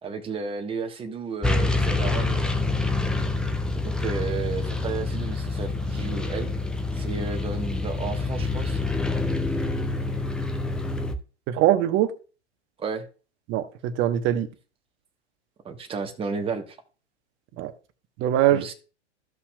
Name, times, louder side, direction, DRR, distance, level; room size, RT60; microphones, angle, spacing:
voice 1, 0.0-2.6 3.8-6.5 6.9-8.8 12.8-13.1 15.6-16.8 18.5-18.7, right 5 dB, 15° right, 1.2 m, -32 dB
sound 1, 1.4-11.1, left 3 dB, ahead, 0.4 m, -27 dB
voice 2, 11.5-12.1 13.5-14.5 17.6-17.7 18.2-18.7, right 12 dB, 35° right, 1.0 m, -22 dB
15.0 x 5.6 x 2.2 m
hypercardioid pair, 105°, 35 cm